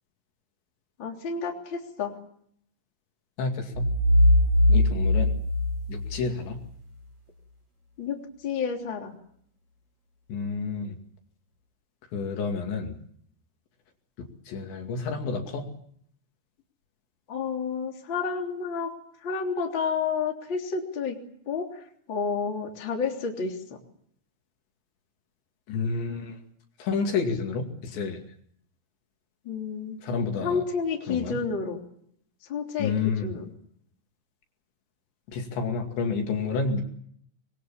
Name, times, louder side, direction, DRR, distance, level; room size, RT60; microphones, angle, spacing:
voice 1, 1.0-2.1 4.7-4.8 8.0-9.1 17.3-18.9 19.2-21.2 21.5-23.6 29.4-30.0 30.4-31.8 32.5-32.9 33.2-33.4, left 5 dB, 25° left, 1 dB, 3.2 m, -30 dB
voice 2, 3.4-3.9 4.7-5.4 5.9-6.6 10.3-11.0 12.1-13.0 14.5-15.7 25.7-26.4 26.8-28.2 30.0-30.6 31.1-31.4 32.8-33.3 35.3-36.8, left 4 dB, 65° left, 3 dB, 4.5 m, -29 dB
sound 1, 3.7-6.6, left 1 dB, 40° right, 9.4 m, -21 dB
25.5 x 22.5 x 7.2 m, 0.66 s
omnidirectional pair, 5.9 m